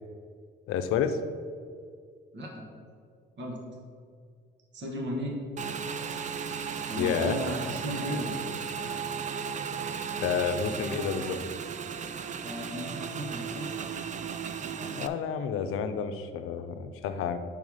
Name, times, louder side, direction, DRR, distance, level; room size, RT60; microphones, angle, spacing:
voice 1, 0.7-1.2 7.0-7.4 10.2-11.4 14.9-17.4, left 7 dB, 85° left, 9 dB, 0.5 m, -30 dB
voice 2, 2.3-2.7 3.4-3.6 4.7-5.4 6.9-8.3 12.4-13.7, equal, 60° right, -1 dB, 1.5 m, -35 dB
Motorcycle / Engine, 5.6-15.1, right 6 dB, 35° right, 0.4 m, -35 dB
5.5 x 4.8 x 5.5 m, 2.2 s
cardioid pair, 90°, 21 cm